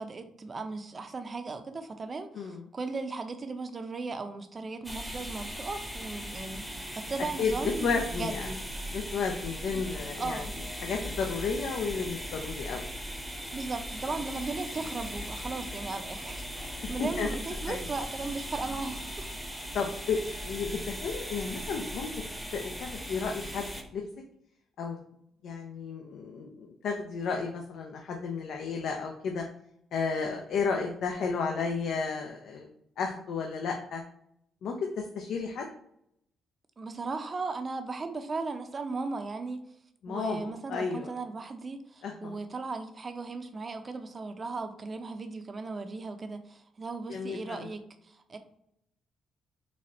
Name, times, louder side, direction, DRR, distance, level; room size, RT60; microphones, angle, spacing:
voice 1, 0.0-8.6 9.7-9.8 10.2-10.6 13.5-19.3 36.8-39.6 40.1-48.4, right 3 dB, 35° right, 8 dB, 0.6 m, -37 dB
sound 1, 4.8-23.8, equal, ahead, 0.8 m, -38 dB
voice 2, 7.8-8.5 8.9-10.4 10.8-12.8 16.8-17.3 17.7-17.8 19.7-22.1 22.5-23.7 23.9-24.0 24.8-25.0 25.4-29.4 29.9-32.7 33.0-34.0 34.6-35.6 40.0-41.1 42.0-42.4 47.1-47.7, left 5 dB, 75° left, 2 dB, 0.5 m, -32 dB
4.1 x 2.4 x 4.2 m, 0.74 s
cardioid pair, 90°, 0 cm